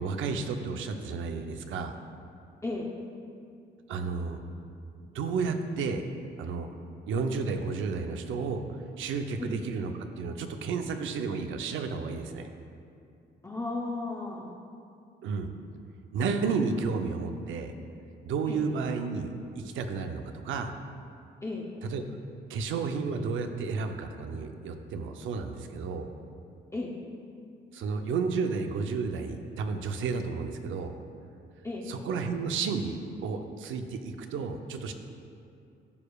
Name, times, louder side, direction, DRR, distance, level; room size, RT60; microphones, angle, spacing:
voice 1, 0.0-1.9 3.9-4.4 5.1-6.0 6.4-6.7 7.1-9.9 10.2-12.5 15.2-15.5 16.1-17.7 18.2-19.3 19.6-20.7 21.8-22.0 22.5-26.1 27.7-30.9 31.9-34.9, right 5 dB, 80° right, 6 dB, 0.6 m, -32 dB
voice 2, 13.4-14.6 18.5-18.6 21.4-21.7 26.7-27.0 31.6-31.9, left 2 dB, 15° left, -2 dB, 0.7 m, -34 dB
14.5 x 4.8 x 2.3 m, 2.5 s
cardioid pair, 90°, 20 cm